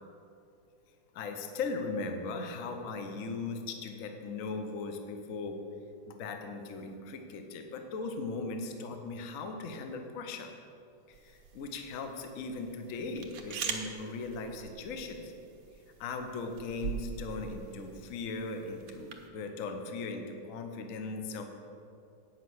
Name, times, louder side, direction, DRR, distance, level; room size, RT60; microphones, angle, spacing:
voice 1, 1.1-5.6 6.1-10.5 11.1-15.3 16.0-21.5, left 3 dB, 55° left, 5 dB, 0.9 m, -38 dB
sound 1, 11.1-19.3, right 6 dB, 80° right, 1.8 m, -43 dB
9.3 x 5.5 x 7.8 m, 2.6 s
omnidirectional pair, 2.4 m